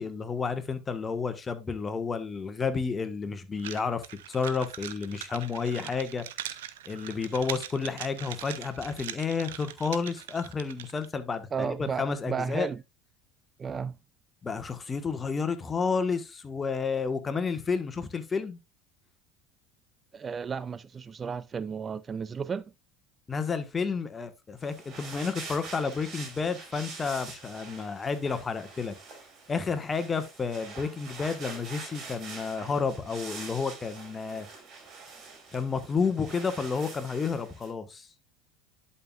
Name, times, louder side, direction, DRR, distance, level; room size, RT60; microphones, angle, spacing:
voice 1, 0.0-6.2 6.9-12.7 14.4-18.6 23.3-28.9 29.5-34.5 35.5-38.1, left 5 dB, 25° left, 1.4 m, -31 dB
sound 1, 3.6-11.1, right 12 dB, 75° right, 0.7 m, -41 dB
voice 2, 11.5-12.8 13.6-14.0 20.1-22.6, right 6 dB, 30° right, 0.4 m, -33 dB
sound 2, 24.6-37.7, right 4 dB, 45° right, 4.5 m, -45 dB
11.0 x 5.6 x 2.4 m
hypercardioid pair, 75°, 0 cm